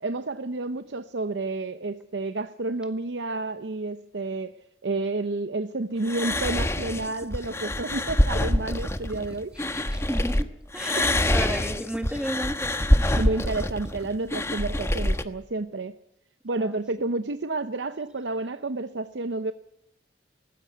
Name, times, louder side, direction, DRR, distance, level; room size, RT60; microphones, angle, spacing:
voice 1, 0.0-9.5 10.9-11.4 13.2-15.9 16.4-19.5, right 2 dB, 85° right, 11 dB, 0.7 m, -30 dB
sound 1, 6.0-10.4 10.7-15.2, left 1 dB, 15° left, 1.1 m, -25 dB
voice 2, 9.7-10.5 10.7-12.7 13.0-13.2 16.6-16.8, equal, 5° right, 7 dB, 1.8 m, -33 dB
18.5 x 15.5 x 10.0 m, 0.78 s
head